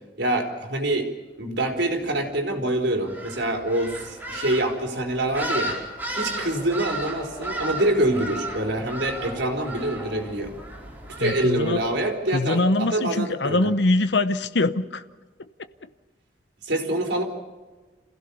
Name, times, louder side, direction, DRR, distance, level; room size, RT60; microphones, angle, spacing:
voice 1, 0.2-1.1 1.4-5.7 6.1-10.5 11.1-13.7 16.6-17.2, right 1 dB, 80° right, 2 dB, 4.0 m, -25 dB
sound 1, 3.0-12.1, right 1 dB, 10° right, 4.7 m, -35 dB
Singing / Musical instrument, 4.0-10.3, left 1 dB, 15° left, 2.7 m, -43 dB
voice 2, 11.2-11.8 12.3-15.0, left 2 dB, 80° left, 12 dB, 0.9 m, -23 dB
27.5 x 16.5 x 7.0 m, 1.3 s
head